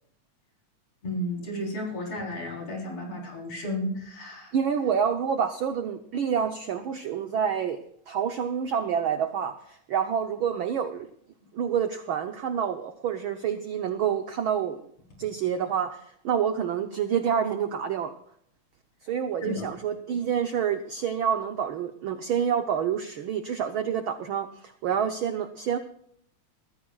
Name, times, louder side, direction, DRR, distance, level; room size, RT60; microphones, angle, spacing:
voice 1, 1.0-4.5 19.4-19.7, left 1 dB, 55° left, -1 dB, 5.0 m, -33 dB
voice 2, 4.5-7.8 8.1-11.1 11.5-14.8 15.2-18.1 19.0-25.8, right 8 dB, 75° right, 7 dB, 1.1 m, -28 dB
21.0 x 14.5 x 2.4 m, 0.67 s
omnidirectional pair, 3.3 m